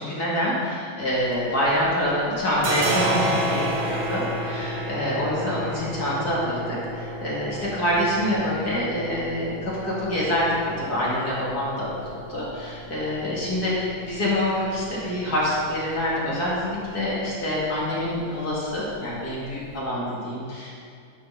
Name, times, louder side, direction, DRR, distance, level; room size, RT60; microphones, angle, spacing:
voice 1, 0.0-20.8, left 1 dB, 45° left, -7 dB, 2.5 m, -26 dB
sound 1, 1.1-2.0 2.2-19.8, right 1 dB, 70° right, 1.8 m, -33 dB
10.5 x 5.1 x 5.7 m, 2.4 s
omnidirectional pair, 2.3 m